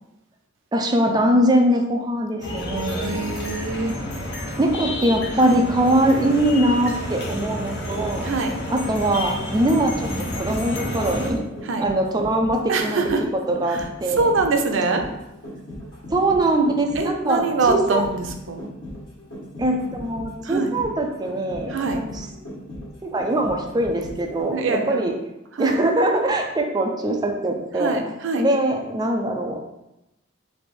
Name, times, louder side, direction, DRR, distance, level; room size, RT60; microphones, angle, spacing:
voice 1, 0.7-3.1 4.6-8.3 8.7-10.1 10.4-11.5 11.8-14.3 16.1-18.0 19.6-22.3 23.0-25.1 25.6-29.6, right 1 dB, 20° right, 2 dB, 0.4 m, -22 dB
sound 1, 2.4-11.3, left 1 dB, 60° left, 0.8 m, -30 dB
voice 2, 3.0-3.9 5.4-5.6 8.2-8.5 11.6-11.8 12.7-13.2 14.2-15.0 17.0-18.2 18.5-18.7 19.6-19.8 20.5-20.7 21.7-22.0 24.5-25.0 25.6-25.8 27.8-28.5, right 3 dB, 85° right, 5 dB, 0.5 m, -23 dB
sound 2, 9.1-24.8 25.1-25.2, equal, 90° left, 1.4 m, -38 dB
3.3 x 2.6 x 4.2 m, 0.90 s
head